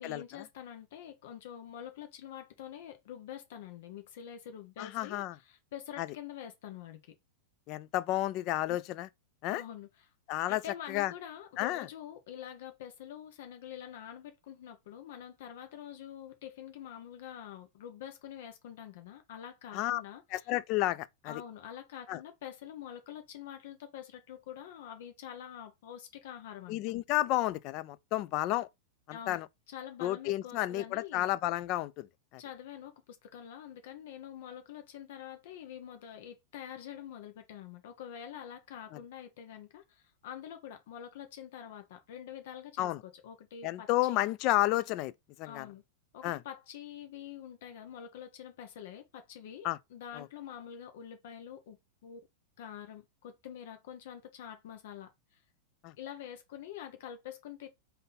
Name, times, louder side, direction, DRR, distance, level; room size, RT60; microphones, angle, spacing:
voice 1, 0.0-7.1 9.5-10.1 10.5-20.5 21.2-26.8 29.1-29.4 29.7-31.3 32.4-44.2 45.4-45.8 46.1-51.8 52.0-52.2 52.6-55.4 56.0-57.7, left 9 dB, 65° left, 0.7 m, -46 dB
voice 2, 4.8-5.4 6.0-6.1 7.7-9.1 9.4-9.6 10.3-10.6 10.9-11.1 11.6-11.9 19.7-20.0 20.3-21.4 22.1-22.2 26.7-28.7 29.1-29.5 30.0-32.1 38.9-39.0 42.8-43.0 43.6-45.1 45.4-45.7 46.2-46.4 49.6-49.8 50.2-50.3 55.8-55.9, left 16 dB, 40° left, 0.3 m, -31 dB
3.8 x 2.7 x 4.0 m
supercardioid pair, 145°, 0 cm